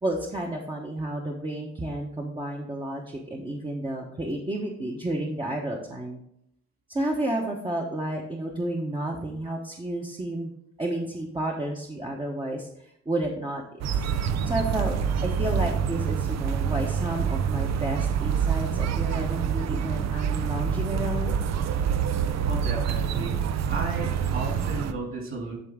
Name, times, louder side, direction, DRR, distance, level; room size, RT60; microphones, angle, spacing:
voice 1, 0.0-6.2 6.9-10.5 10.8-14.1 14.4-15.0 15.2-21.4, right 1 dB, 15° right, -1 dB, 1.0 m, -31 dB
sound 1, 13.8-24.9, right 7 dB, 60° right, 0.6 m, -26 dB
voice 2, 22.4-23.4 23.6-25.5, right 3 dB, 45° right, -1 dB, 2.8 m, -34 dB
10.5 x 3.8 x 3.7 m, 0.75 s
cardioid pair, 90°, 30 cm